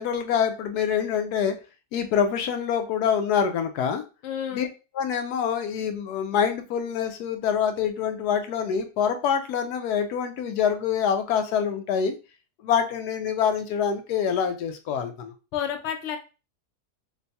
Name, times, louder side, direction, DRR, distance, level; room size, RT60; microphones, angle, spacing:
voice 1, 0.0-1.6 1.9-4.0 4.5-4.7 4.9-12.1 12.6-15.3, left 7 dB, 75° left, 7 dB, 1.1 m, -25 dB
voice 2, 4.2-4.7 15.5-16.2, left 9 dB, 60° left, 4 dB, 0.8 m, -30 dB
3.0 x 2.2 x 4.0 m, 0.31 s
omnidirectional pair, 1.7 m